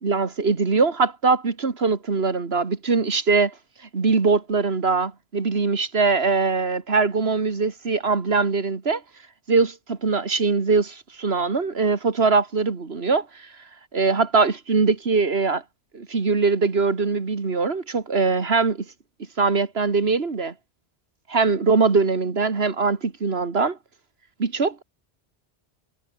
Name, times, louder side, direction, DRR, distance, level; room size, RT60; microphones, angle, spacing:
voice 1, 0.0-3.5 3.9-9.0 9.5-13.5 13.9-15.6 15.9-18.9 19.4-20.5 21.3-23.8 24.4-24.8, right 4 dB, 70° right, 2.2 m, -22 dB
omnidirectional pair, 1.1 m